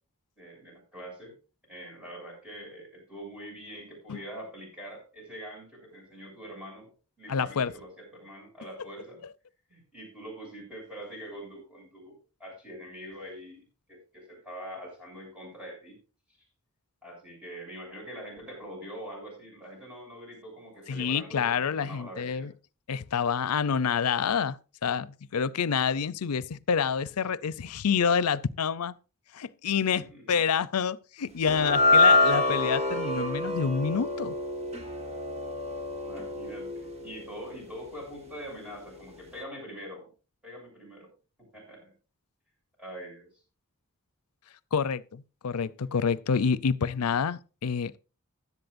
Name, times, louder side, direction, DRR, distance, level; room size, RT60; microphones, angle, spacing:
voice 1, 0.4-1.3 1.7-6.9 7.2-9.2 9.7-13.6 13.9-16.0 17.0-22.5 30.0-30.4 36.0-40.1 40.4-41.1 41.5-41.9 42.8-43.3, equal, 5° right, 7.0 m, -44 dB
voice 2, 7.3-7.7 20.9-22.5 22.9-24.6 24.8-28.9 29.3-34.3 44.7-48.0, left 6 dB, 85° left, 0.5 m, -28 dB
sound 1, 31.5-37.9, left 2 dB, 30° right, 1.6 m, -26 dB
16.0 x 11.0 x 2.6 m
head